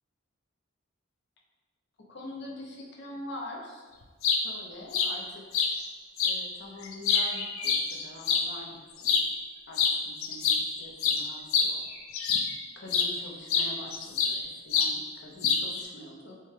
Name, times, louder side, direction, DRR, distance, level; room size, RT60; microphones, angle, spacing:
voice 1, 2.1-3.9 4.4-5.2 5.6-5.7 6.2-9.2 9.7-11.8 12.8-16.4, left 1 dB, 55° left, -1 dB, 0.8 m, -44 dB
sound 1, 4.0-4.4 4.9-5.1 5.5-5.7 6.2-6.4 6.8-8.5 9.0-9.3 9.8-10.0 10.2-12.5 12.9-13.1 13.5-14.4 14.7-14.9 15.4-15.8, left 6 dB, 90° left, 0.5 m, -26 dB
6.7 x 3.3 x 2.2 m, 1.4 s
head